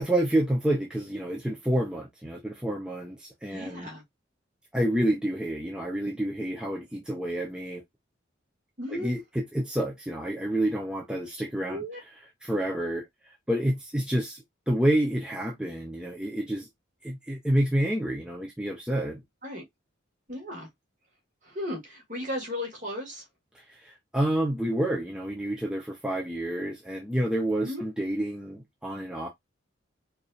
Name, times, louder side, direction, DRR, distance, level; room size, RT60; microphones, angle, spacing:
voice 1, 0.0-3.9 4.7-7.8 8.9-11.8 12.4-16.7 17.0-19.2 23.7-29.3, right 1 dB, 5° right, 0.6 m, -29 dB
voice 2, 3.5-4.0 8.8-9.1 11.7-12.0 19.4-19.6 20.3-20.7 21.4-23.2 27.6-27.8, left 1 dB, 40° right, 1.8 m, -35 dB
4.7 x 2.7 x 2.4 m
head